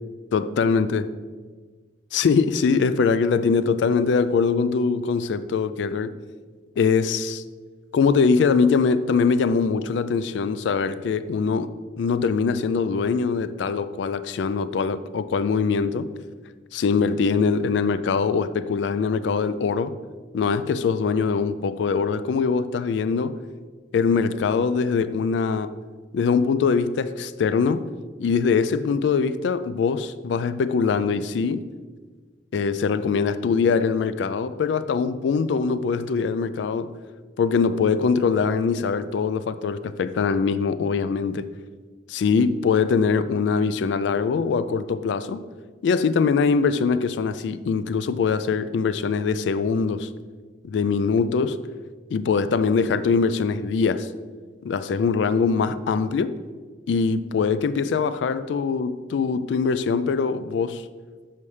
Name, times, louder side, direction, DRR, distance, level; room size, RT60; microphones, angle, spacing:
voice 1, 0.3-1.0 2.1-6.1 6.8-7.4 7.9-11.7 12.0-16.1 16.7-19.9 20.3-23.4 23.9-25.7 26.1-27.8 28.2-31.6 32.5-36.9 37.4-41.5 42.1-45.4 45.8-50.1 50.6-51.6 52.1-54.1 54.6-56.4 56.9-60.8, left 5 dB, 75° left, 0.3 m, -22 dB
7.0 x 5.5 x 3.2 m
head